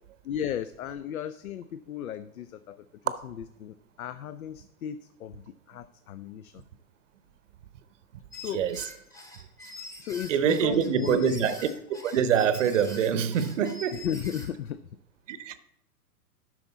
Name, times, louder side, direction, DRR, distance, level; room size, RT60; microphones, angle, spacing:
voice 1, 0.2-2.8 3.2-6.6 8.4-8.6 10.0-11.5 13.9-14.8, left 9 dB, 70° left, 0.6 m, -35 dB
sound 1, 8.3-14.7, left 1 dB, 5° left, 1.1 m, -45 dB
voice 2, 10.3-11.6 11.9-14.1 15.3-15.6, right 8 dB, 55° right, 0.8 m, -25 dB
10.5 x 6.3 x 4.0 m
figure-of-eight pair, 115°, 45 cm